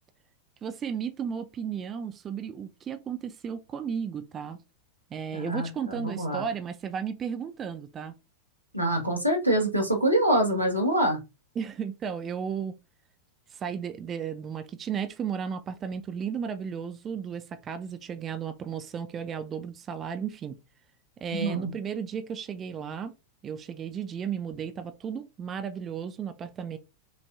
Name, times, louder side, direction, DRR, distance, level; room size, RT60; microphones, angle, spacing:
voice 1, 0.6-4.6 5.1-8.1 11.6-12.8 13.5-20.5 21.2-23.1 23.4-26.8, right 7 dB, 25° right, 0.5 m, -34 dB
voice 2, 5.3-6.4 8.7-11.2 21.3-21.7, right 1 dB, 90° right, 1.3 m, -25 dB
6.2 x 2.5 x 2.4 m
figure-of-eight pair, 90°, 0 cm